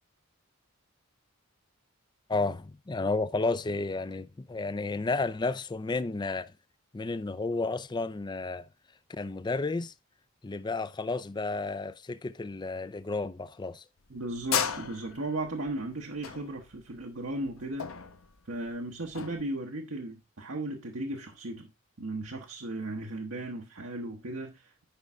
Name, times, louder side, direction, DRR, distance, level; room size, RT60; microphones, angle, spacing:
voice 1, 2.3-6.5 6.9-8.7 9.1-9.9 10.4-13.8, left 3 dB, 20° left, 0.4 m, -32 dB
sound 1, 14.0-19.4, left 8 dB, 85° left, 0.9 m, -35 dB
voice 2, 14.1-17.9 18.4-21.7 22.0-24.8, right 2 dB, 70° right, 1.0 m, -36 dB
10.5 x 5.4 x 3.5 m
head